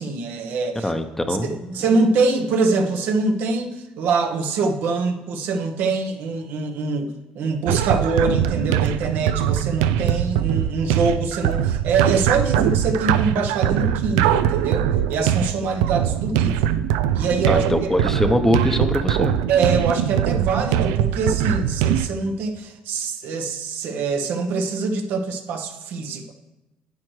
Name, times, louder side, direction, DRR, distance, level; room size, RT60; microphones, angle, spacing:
voice 1, 0.0-0.9 1.4-16.8 17.1-17.6 19.5-26.3, right 4 dB, 70° right, 4 dB, 0.9 m, -24 dB
voice 2, 0.8-1.8 17.5-19.4, left 1 dB, 10° left, 8 dB, 0.8 m, -22 dB
sound 1, 7.7-22.1, right 10 dB, 90° right, 0.3 m, -22 dB
10.5 x 7.7 x 3.2 m, 1.0 s
supercardioid pair, 70°, 4 cm